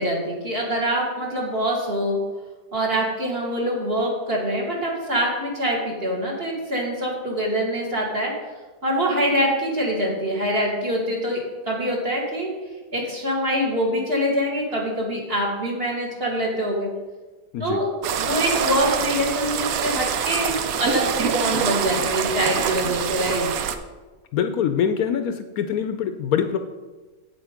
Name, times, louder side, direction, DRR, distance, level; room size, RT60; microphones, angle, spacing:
voice 1, 0.0-2.2 2.7-8.3 8.8-11.4 11.7-12.5 12.9-16.9 17.6-17.9 18.2-23.5, equal, 35° right, -2 dB, 2.2 m, -24 dB
sound 1, 18.0-23.7, right 8 dB, 65° right, 1.0 m, -25 dB
voice 2, 24.3-26.6, left 8 dB, 70° left, 8 dB, 1.0 m, -24 dB
8.5 x 7.7 x 5.0 m, 1.2 s
omnidirectional pair, 1.7 m